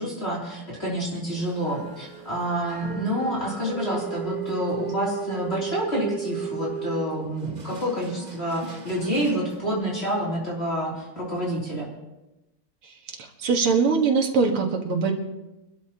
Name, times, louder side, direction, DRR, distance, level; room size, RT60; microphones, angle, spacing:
voice 1, 0.0-11.9, equal, 30° left, -5 dB, 3.3 m, -28 dB
sound 1, 1.4-9.6, right 7 dB, 30° right, 0.8 m, -36 dB
voice 2, 13.2-15.1, right 5 dB, 85° right, 1 dB, 2.5 m, -22 dB
24.5 x 12.5 x 2.9 m, 1.0 s
omnidirectional pair, 2.3 m